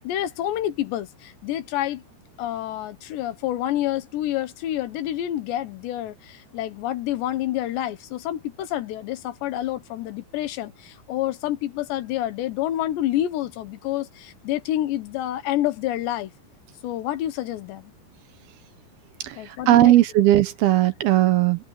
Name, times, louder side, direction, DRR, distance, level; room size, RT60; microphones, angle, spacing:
voice 1, 0.0-2.0 2.4-16.3 16.8-17.9 19.4-19.9, left 13 dB, 90° left, 3.6 m, -28 dB
voice 2, 19.7-21.6, right 14 dB, 70° right, 2.8 m, -17 dB
omnidirectional pair, 4.8 m